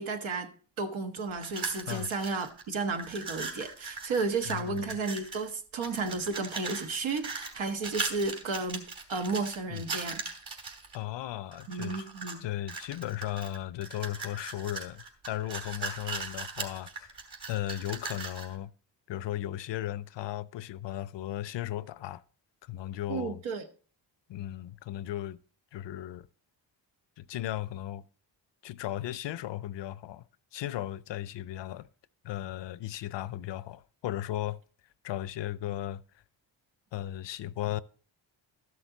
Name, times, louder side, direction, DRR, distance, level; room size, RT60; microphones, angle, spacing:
voice 1, 0.0-8.8 9.1-10.2 11.7-12.4 23.1-23.7, right 4 dB, 75° right, 1.3 m, -33 dB
sound 1, 1.3-2.6 2.9-5.5 5.8-11.0 11.5-12.4 12.7-18.5, right 4 dB, 55° right, 2.8 m, -39 dB
voice 2, 4.5-4.9 9.7-9.8 10.9-12.1 12.4-17.1 17.5-18.7 19.1-22.2 22.6-23.4 24.3-25.4 25.7-26.3 27.2-28.0 28.6-30.2 30.5-31.9 32.2-34.6 35.0-36.0 36.9-37.8, left 13 dB, 65° left, 0.6 m, -36 dB
12.5 x 6.5 x 3.9 m
cardioid pair, 80°, 47 cm